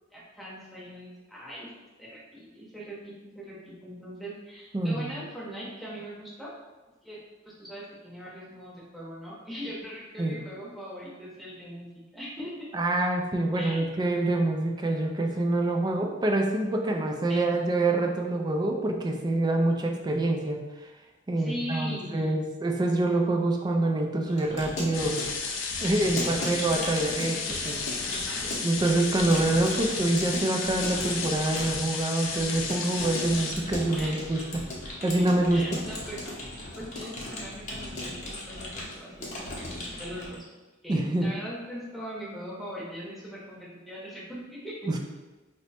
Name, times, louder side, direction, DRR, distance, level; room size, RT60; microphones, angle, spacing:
voice 1, 0.1-1.7 2.0-6.5 7.0-7.2 7.4-11.9 12.1-12.7 13.5-13.9 17.3-17.6 21.4-22.4 26.2-26.5 28.0-28.5 33.9-34.1 35.5-36.5 36.7-40.4 40.8-45.0, equal, ahead, -7 dB, 0.9 m, -40 dB
voice 2, 4.7-5.1 10.2-10.4 12.7-20.6 21.3-25.2 25.8-27.8 28.6-34.6 35.0-35.8 40.9-41.3 44.9-45.0, right 2 dB, 20° right, 2 dB, 0.3 m, -26 dB
Keyboard (musical) / Computer keyboard, 24.3-40.4, left 1 dB, 40° left, 0.8 m, -37 dB
sound 1, 24.9-33.5, left 5 dB, 90° left, 0.4 m, -33 dB
3.0 x 2.1 x 4.2 m, 1.2 s
head